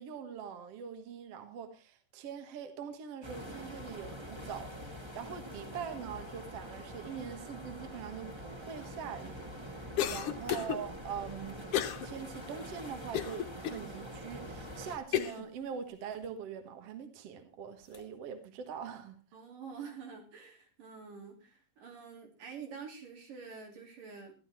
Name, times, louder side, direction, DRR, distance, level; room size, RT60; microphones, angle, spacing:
voice 1, 0.0-9.8 10.1-11.6 12.0-19.2, right 7 dB, 55° right, 7 dB, 2.2 m, -43 dB
sound 1, 3.2-15.0, equal, 10° right, 1.4 m, -45 dB
sound 2, 8.6-9.3 10.1-11.6 12.2-12.9 14.5-15.0 15.3-15.4 16.0-16.4 17.7-18.2, left 5 dB, 35° left, 2.4 m, -53 dB
voice 2, 9.9-10.3 19.3-24.3, right 6 dB, 80° right, 1 dB, 4.8 m, -47 dB
Cough, 10.0-10.8 11.7-12.1 12.5-12.6 13.1-13.8 14.4-14.5 15.1-15.4, left 10 dB, 65° left, 1.5 m, -32 dB
14.5 x 11.5 x 4.4 m, 0.33 s
omnidirectional pair, 3.8 m